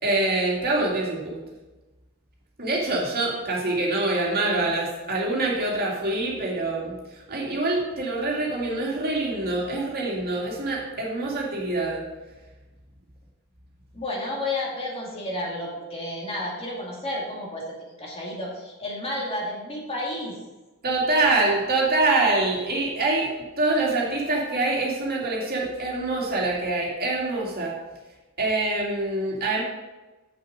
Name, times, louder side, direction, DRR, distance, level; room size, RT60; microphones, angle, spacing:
voice 1, 0.0-1.4 2.6-12.0 20.8-23.3 23.6-27.7 28.4-29.6, right 2 dB, 45° right, -3 dB, 2.3 m, -25 dB
voice 2, 13.9-20.4, left 1 dB, 25° left, -3 dB, 2.3 m, -31 dB
8.2 x 6.8 x 5.1 m, 1.1 s
head